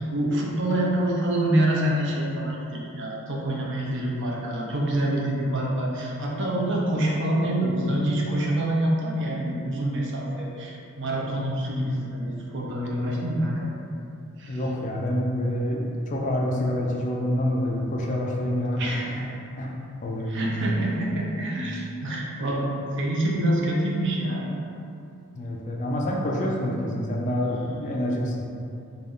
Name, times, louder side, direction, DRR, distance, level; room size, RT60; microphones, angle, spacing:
voice 1, 0.0-13.7 14.4-14.6 18.8-19.2 20.3-22.7 23.0-24.4, right 1 dB, 55° right, -3 dB, 0.6 m, -26 dB
voice 2, 14.5-18.8 19.2-19.8 20.0-20.6 25.3-28.5, left 1 dB, 35° left, -1 dB, 0.3 m, -27 dB
3.8 x 2.3 x 3.5 m, 2.6 s
head